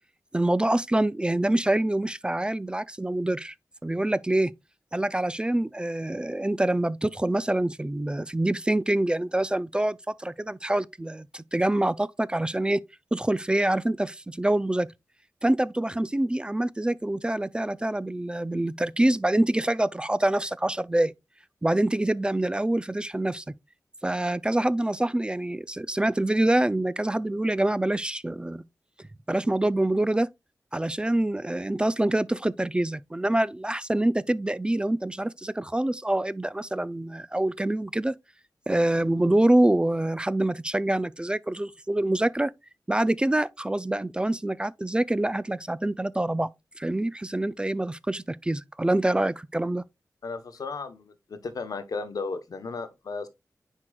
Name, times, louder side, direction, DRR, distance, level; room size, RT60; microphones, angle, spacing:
voice 1, 0.3-3.5 3.8-4.5 4.9-12.8 13.1-14.9 15.4-21.1 21.6-23.5 24.0-28.6 29.0-30.3 30.7-38.2 38.7-42.5 42.9-46.5 46.8-49.8, right 1 dB, 15° right, 0.3 m, -25 dB
voice 2, 50.2-53.3, left 4 dB, 85° left, 0.9 m, -35 dB
9.7 x 4.5 x 2.3 m
wide cardioid pair, 85°, 6 cm